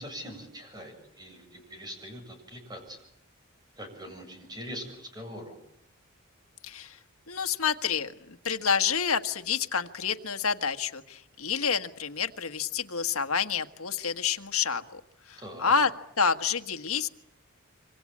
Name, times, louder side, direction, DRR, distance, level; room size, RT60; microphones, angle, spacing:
voice 1, 0.0-3.1 3.8-5.6 15.4-15.7, equal, 20° right, 5 dB, 7.5 m, -42 dB
voice 2, 6.6-7.0 7.3-15.0 15.3-15.9 16.2-17.1, left 6 dB, 80° left, 8 dB, 1.6 m, -28 dB
26.5 x 25.5 x 8.7 m, 0.72 s
head